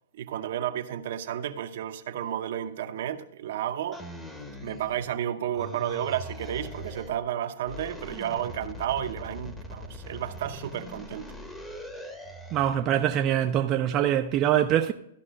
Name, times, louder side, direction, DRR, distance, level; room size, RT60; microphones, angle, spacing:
voice 1, 0.1-4.0 4.6-11.3, right 10 dB, 60° right, 0.7 m, -32 dB
sound 1, 3.9-5.2 5.5-7.2 7.6-12.8, left 1 dB, 10° left, 0.9 m, -41 dB
voice 2, 12.5-14.9, right 11 dB, 30° right, 0.4 m, -24 dB
13.0 x 5.4 x 5.1 m
hypercardioid pair, 145°, 0 cm